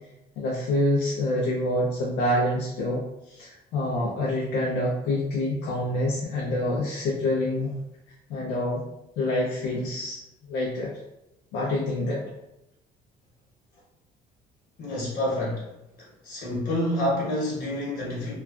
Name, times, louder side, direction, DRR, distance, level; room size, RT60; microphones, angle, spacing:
voice 1, 0.4-7.7 8.3-8.8 9.2-10.2 10.5-10.9 11.5-12.2, left 1 dB, 85° left, -5 dB, 0.6 m, -26 dB
voice 2, 14.8-15.7 16.2-18.4, left 1 dB, 65° left, -4 dB, 1.2 m, -28 dB
3.0 x 2.3 x 2.4 m, 0.88 s
cardioid pair, 110°, 17 cm